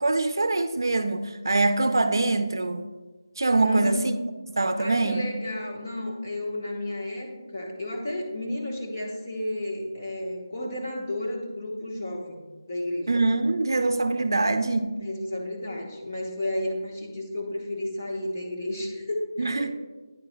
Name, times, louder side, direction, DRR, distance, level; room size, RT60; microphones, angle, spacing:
voice 1, 0.0-2.9 3.4-4.2 4.5-5.2 13.1-15.0 19.4-19.7, right 2 dB, 65° right, 9 dB, 0.5 m, -24 dB
voice 2, 3.6-4.1 4.8-12.4 12.7-13.2 15.0-19.7, left 1 dB, 35° left, -1 dB, 1.1 m, -32 dB
9.5 x 6.8 x 2.2 m, 1.2 s
figure-of-eight pair, 175°, 2 cm